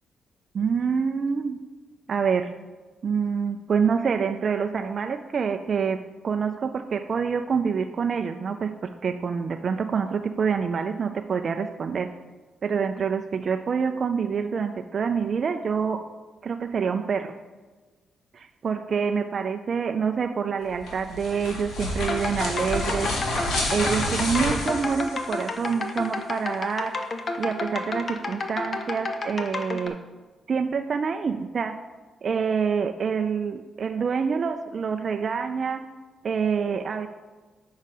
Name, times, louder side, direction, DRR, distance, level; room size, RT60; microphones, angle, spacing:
voice 1, 0.5-1.6 2.1-2.5 3.0-12.1 12.6-16.0 16.4-17.3 18.3-23.1 23.7-27.0 27.4-30.0 30.5-31.8 32.2-35.8 36.2-37.1, right 6 dB, 45° right, 6 dB, 0.3 m, -26 dB
sound 1, 20.7-25.7, left 1 dB, 75° left, 1.8 m, -29 dB
sound 2, 22.0-29.9, left 3 dB, 40° left, 0.7 m, -31 dB
6.5 x 5.5 x 5.1 m, 1.3 s
cardioid pair, 120°, 0 cm